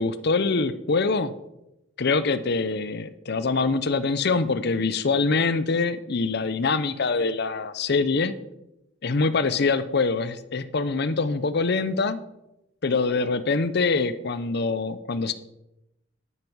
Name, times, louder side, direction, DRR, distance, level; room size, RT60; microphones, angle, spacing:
voice 1, 0.0-1.3 2.0-8.3 9.0-12.2 12.8-15.3, left 4 dB, 60° left, 13 dB, 0.7 m, -24 dB
11.0 x 9.4 x 5.5 m, 0.89 s
head